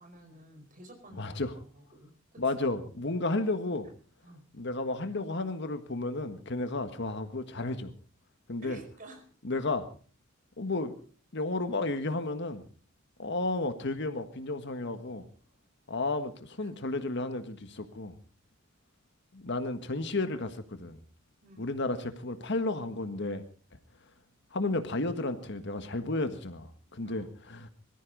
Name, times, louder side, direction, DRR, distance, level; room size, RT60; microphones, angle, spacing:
voice 1, 0.0-1.4 1.7-2.4 4.2-4.4 8.6-9.2 16.6-16.7 21.4-21.7 27.0-27.3, right 2 dB, 45° right, 4.8 m, -51 dB
voice 2, 1.2-1.5 2.4-3.9 4.5-7.9 8.5-8.8 9.4-9.8 10.6-11.0 11.3-12.6 13.2-15.2 15.9-18.1 19.3-21.0 21.6-23.4 24.5-27.7, left 2 dB, 65° left, 1.6 m, -32 dB
22.5 x 14.0 x 4.0 m
head